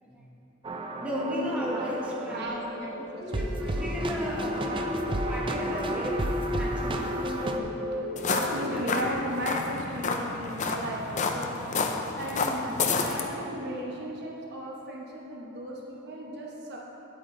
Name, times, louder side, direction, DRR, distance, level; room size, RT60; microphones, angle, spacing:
sound 1, 0.6-2.7 3.3-7.6, right 2 dB, 25° right, 0.5 m, -33 dB
voice 1, 1.0-2.7 3.2-4.8 5.3-6.2 6.6-7.1 8.6-8.8 12.5-12.9, equal, 5° right, -5 dB, 1.4 m, -35 dB
voice 2, 1.7-4.6 7.2-8.0 8.3-12.6 13.0-16.8, equal, 55° right, -2 dB, 1.0 m, -37 dB
sound 2, 1.9-9.1, left 2 dB, 75° right, 1.1 m, -35 dB
sound 3, 8.2-13.3, left 4 dB, 35° left, 0.5 m, -30 dB
9.5 x 8.5 x 3.8 m, 2.9 s
head